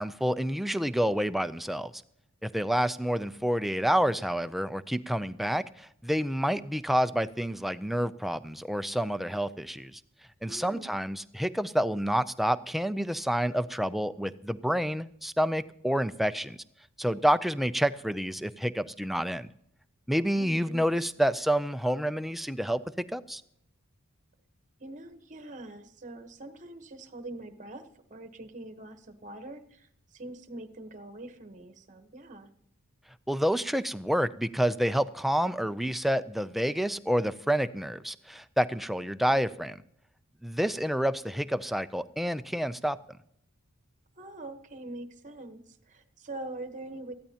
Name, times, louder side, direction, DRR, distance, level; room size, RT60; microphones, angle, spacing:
voice 1, 0.0-1.9 2.4-10.0 10.4-16.6 17.0-19.5 20.1-23.4 33.3-39.8 40.4-43.0, equal, ahead, 12 dB, 0.4 m, -28 dB
voice 2, 10.5-10.9 20.3-20.9 24.8-32.5 44.2-47.1, right 2 dB, 35° right, 8 dB, 1.1 m, -44 dB
19.5 x 14.0 x 2.9 m, 0.72 s
head